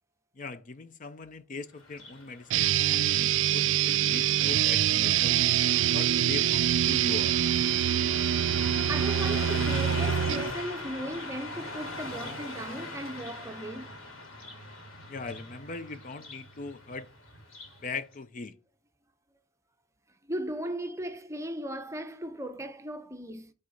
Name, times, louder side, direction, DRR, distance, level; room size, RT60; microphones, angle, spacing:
voice 1, 0.4-5.4 5.9-7.4 15.1-17.1 17.8-18.5, left 4 dB, 40° left, 0.5 m, -40 dB
Car passing by, 1.8-17.8, left 2 dB, 90° left, 2.9 m, -40 dB
sound 1, 2.5-10.5, right 11 dB, 65° right, 0.3 m, -25 dB
voice 2, 8.9-13.9 20.3-23.5, right 1 dB, 15° right, 0.7 m, -37 dB
6.8 x 4.1 x 6.3 m
head